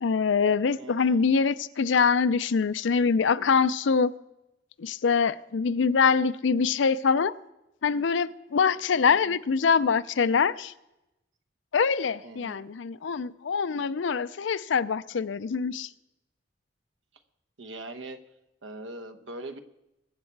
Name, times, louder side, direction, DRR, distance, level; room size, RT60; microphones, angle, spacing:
voice 1, 0.0-4.1 4.8-7.3 7.8-10.7 11.7-15.9, left 5 dB, 70° left, 16 dB, 0.5 m, -24 dB
voice 2, 0.8-1.3 9.0-9.4 12.2-12.6 17.6-18.2 18.6-19.6, right 2 dB, 80° right, 9 dB, 1.1 m, -41 dB
21.5 x 8.2 x 4.6 m, 0.91 s
head